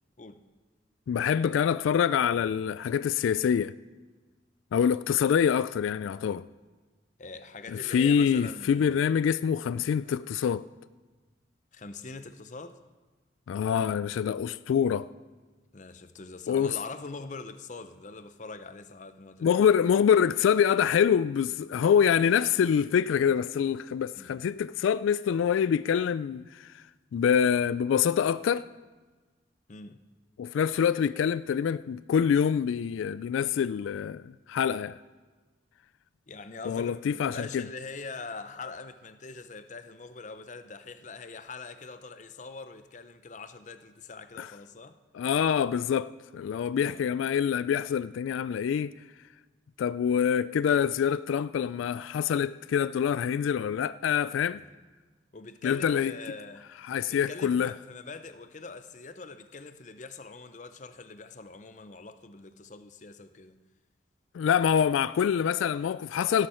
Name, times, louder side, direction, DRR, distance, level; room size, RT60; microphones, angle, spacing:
voice 1, 1.1-3.7 4.7-6.5 7.7-10.6 13.5-15.1 16.5-16.8 19.4-26.8 27.1-28.7 30.4-35.0 36.7-37.6 44.4-44.5 45.1-48.9 49.8-54.6 55.6-56.1 56.8-57.7 64.3-66.5, left 8 dB, 90° left, 0.3 m, -25 dB
voice 2, 7.2-9.0 10.0-10.2 11.7-12.8 15.7-19.8 24.2-24.4 29.7-30.0 36.3-45.0 46.8-47.2 55.3-56.7 57.1-63.6, left 4 dB, 40° left, 0.6 m, -43 dB
17.0 x 11.5 x 4.4 m
head